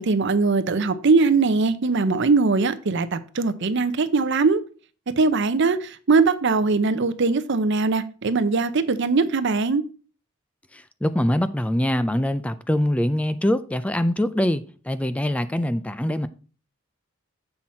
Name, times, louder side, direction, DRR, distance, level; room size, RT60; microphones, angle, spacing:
voice 1, 0.0-4.6 5.2-9.8, right 4 dB, 60° right, 0.6 m, -21 dB
voice 2, 10.7-16.3, left 1 dB, 5° left, 0.3 m, -23 dB
7.7 x 5.7 x 4.3 m
head